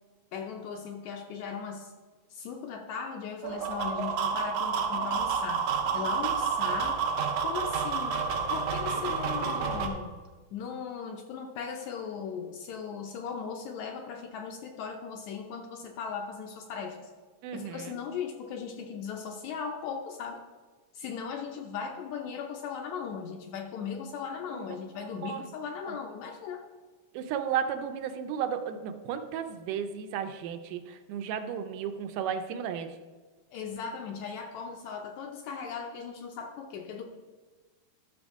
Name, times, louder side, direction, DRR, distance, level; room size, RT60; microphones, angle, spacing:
voice 1, 0.3-1.9 2.3-7.0 7.4-8.2 8.5-10.1 10.5-17.1 17.5-20.4 20.9-26.6 33.5-37.0, left 6 dB, 75° left, 3 dB, 1.8 m, -38 dB
sound 1, 3.4-9.9, right 6 dB, 65° right, 1.6 m, -29 dB
voice 2, 17.4-18.0 24.5-25.4 25.9-26.0 27.1-33.0, right 8 dB, 80° right, 8 dB, 2.2 m, -34 dB
12.5 x 6.2 x 3.5 m, 1.3 s
omnidirectional pair, 3.7 m